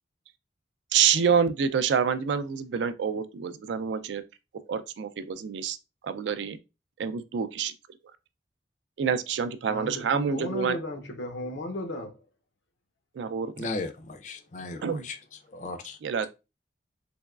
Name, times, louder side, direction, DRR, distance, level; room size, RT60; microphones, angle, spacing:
voice 1, 0.9-4.2 4.7-5.8 6.0-6.6 7.0-7.7 9.0-10.8 13.1-13.7 14.8-15.1 16.0-16.3, right 7 dB, 75° right, 0.3 m, -27 dB
voice 2, 9.7-12.3, left 1 dB, 80° left, 0.7 m, -35 dB
voice 3, 13.6-15.2 15.5-16.0, left 3 dB, 40° left, 0.4 m, -36 dB
3.4 x 3.0 x 2.3 m
head